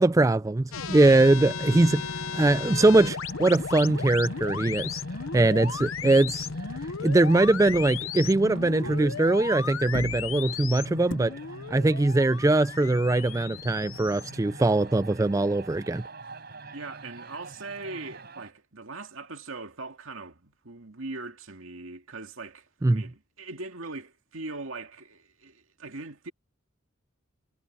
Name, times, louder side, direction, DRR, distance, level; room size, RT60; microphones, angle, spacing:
voice 1, 0.0-2.0 2.3-5.0 5.3-6.5 7.0-11.4 11.7-16.0 22.8-23.0, right 2 dB, 15° right, 0.3 m, -22 dB
sound 1, 0.7-15.3, left 5 dB, 90° left, 0.9 m, -35 dB
sound 2, 1.0-4.7 5.0-5.4 5.6-9.5 9.8-11.1, left 1 dB, 65° left, 2.7 m, -44 dB
sound 3, 1.9-18.5, right 3 dB, 50° right, 4.5 m, -47 dB
voice 2, 16.7-26.3, right 3 dB, 80° right, 2.2 m, -40 dB
head